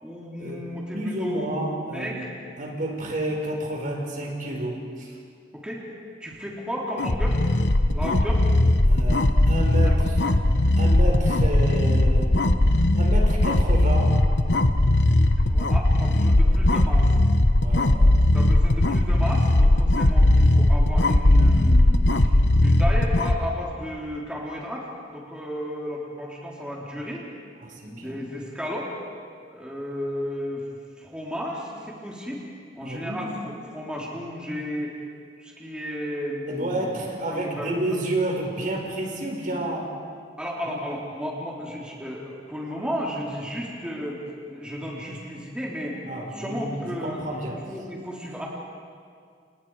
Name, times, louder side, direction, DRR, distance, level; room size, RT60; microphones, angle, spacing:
voice 1, 0.0-2.3 5.5-5.8 6.2-7.4 7.9-8.4 9.8-10.1 15.1-17.1 18.3-22.3 22.6-27.2 27.8-28.9 29.5-30.6 31.0-32.4 32.7-34.9 35.4-37.0 37.3-38.0 40.4-44.2 44.5-46.0 46.3-48.5, equal, 5° right, -4 dB, 3.5 m, -33 dB
voice 2, 0.9-2.2 2.6-5.2 8.0-8.2 8.8-10.2 10.8-12.3 13.0-14.1 17.6-18.1 27.6-28.2 32.8-33.3 36.5-39.9 40.7-40.8 46.1-47.6, right 1 dB, 50° right, 0 dB, 4.9 m, -30 dB
sound 1, 7.0-23.4, left 1 dB, 85° left, 1.3 m, -19 dB
30.0 x 29.0 x 4.9 m, 2.2 s
head